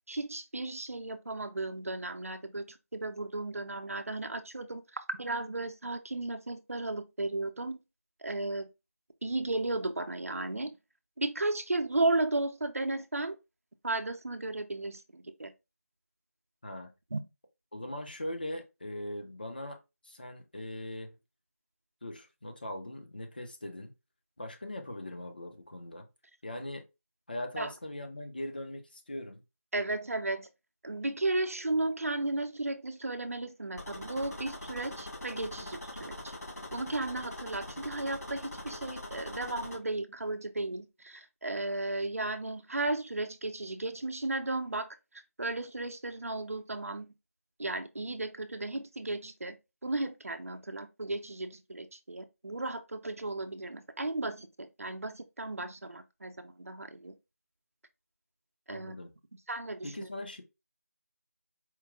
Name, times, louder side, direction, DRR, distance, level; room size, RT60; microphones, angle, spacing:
voice 1, 0.1-7.8 8.2-8.7 9.2-10.7 11.2-13.4 13.8-15.5 17.1-17.2 27.6-27.7 29.7-30.5 30.8-36.3 36.7-44.9 45.4-47.1 47.6-49.6 49.8-57.1 58.7-59.0 59.5-60.1, right 2 dB, 60° right, 0.6 m, -34 dB
voice 2, 16.6-16.9 17.7-21.2 22.0-23.9 24.4-26.1 26.4-26.8 27.3-29.4 58.7-59.1 59.8-60.4, left 1 dB, 35° left, 0.7 m, -40 dB
sound 1, 33.8-39.8, left 1 dB, 90° left, 2.7 m, -43 dB
4.5 x 2.2 x 3.7 m
figure-of-eight pair, 175°, 9 cm